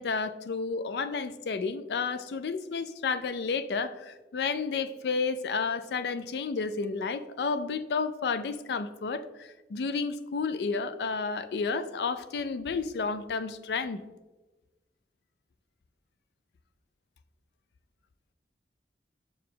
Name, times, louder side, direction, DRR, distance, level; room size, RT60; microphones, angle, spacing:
voice 1, 0.0-14.0, left 4 dB, 70° left, 13 dB, 0.4 m, -31 dB
6.0 x 4.8 x 3.7 m, 1.1 s
head